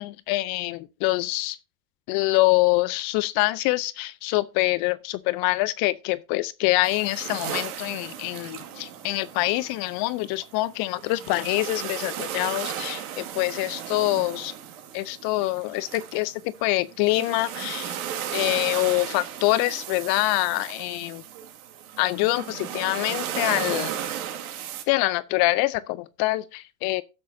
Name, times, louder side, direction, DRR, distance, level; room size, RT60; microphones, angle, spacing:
voice 1, 0.0-1.6 2.1-14.5 14.9-18.0 18.3-21.2 22.0-23.9 24.9-27.0, left 19 dB, 50° left, 0.6 m, -25 dB
sound 1, 6.8-24.8, right 9 dB, 70° right, 2.2 m, -35 dB
12.0 x 9.3 x 2.7 m
hypercardioid pair, 80°, 45 cm